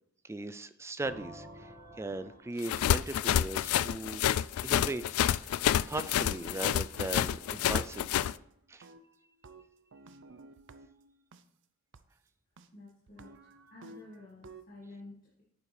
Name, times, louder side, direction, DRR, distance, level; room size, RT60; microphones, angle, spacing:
voice 1, 0.2-4.3 4.6-5.0 5.4-5.6 5.9-8.3 8.7-8.9, right 2 dB, 15° right, 13 dB, 0.3 m, -38 dB
sound 1, 1.0-4.8, equal, 75° right, 2.1 m, -52 dB
sound 2, 2.6-8.3, left 10 dB, 85° left, 0.3 m, -28 dB
sound 3, 5.7-8.5 8.8-11.4 11.9-12.0 12.6-12.7 13.1-14.7, right 3 dB, 60° right, 0.6 m, -54 dB
voice 2, 12.7-15.4, left 2 dB, 40° left, -5 dB, 1.8 m, -51 dB
9.4 x 7.2 x 3.3 m, 0.72 s
head